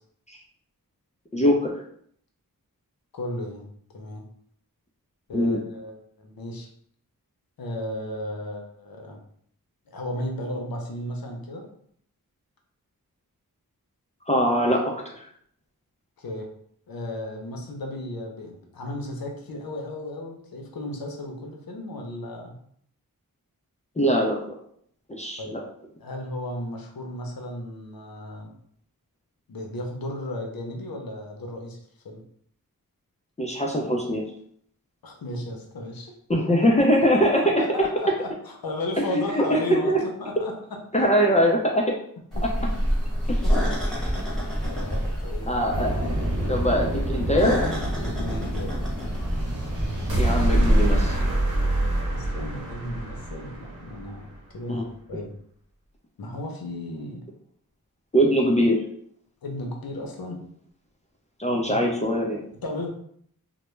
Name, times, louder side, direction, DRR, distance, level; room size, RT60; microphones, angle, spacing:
voice 1, 1.3-1.8 5.3-5.6 14.3-14.8 24.0-24.4 25.1-25.6 33.4-34.2 36.3-37.4 39.1-39.6 39.9-40.0 40.9-41.9 43.3-43.4 45.5-45.9 46.5-47.6 50.2-51.2 54.7-54.8 58.1-58.8 61.4-62.4, equal, 20° left, -1 dB, 0.4 m, -22 dB
voice 2, 3.1-3.7 3.9-4.3 5.3-6.7 7.6-9.2 9.9-11.6 16.2-16.5 16.9-22.6 25.4-25.6 26.0-28.5 29.5-31.8 32.0-32.2 35.0-36.1 37.4-40.5 40.9-41.1 42.4-42.7 43.4-43.5 44.6-45.7 48.0-48.8 52.1-55.3 56.2-57.2 59.4-60.4 61.5-61.8 62.6-62.9, left 1 dB, 80° left, 1 dB, 0.6 m, -34 dB
sound 1, 42.3-51.1, equal, ahead, 1.0 m, -27 dB
sound 2, 45.7-52.4, right 1 dB, 45° right, 0.6 m, -30 dB
sound 3, 50.1-54.4, right 1 dB, 85° right, 0.9 m, -27 dB
2.2 x 2.0 x 3.0 m, 0.65 s
wide cardioid pair, 65°, 36 cm